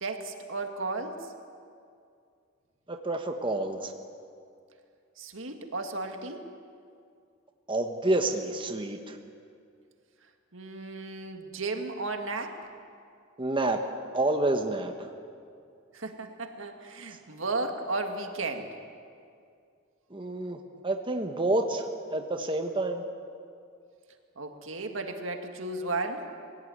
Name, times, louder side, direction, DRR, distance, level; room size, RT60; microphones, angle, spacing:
voice 1, 0.0-1.3 5.2-6.5 10.5-12.6 15.9-18.8 24.4-26.3, right 3 dB, 70° right, 5 dB, 2.0 m, -34 dB
voice 2, 2.9-3.9 7.7-9.2 13.4-13.8 14.1-14.9 20.1-20.6 20.8-23.0, right 2 dB, 25° right, 3 dB, 1.3 m, -28 dB
22.0 x 16.5 x 9.5 m, 2.4 s
head